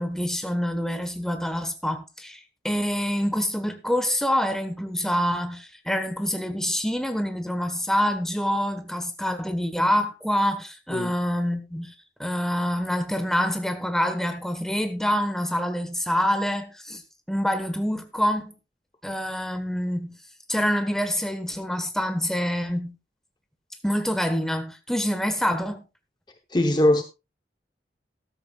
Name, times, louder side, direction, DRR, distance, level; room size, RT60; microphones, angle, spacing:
voice 1, 0.0-11.9 12.2-17.0 17.3-18.6 19.0-20.2 20.5-22.9 23.8-25.8, equal, 5° left, 1.2 m, -26 dB
voice 2, 26.5-27.0, left 1 dB, 25° left, 0.8 m, -20 dB
13.0 x 13.0 x 2.3 m
head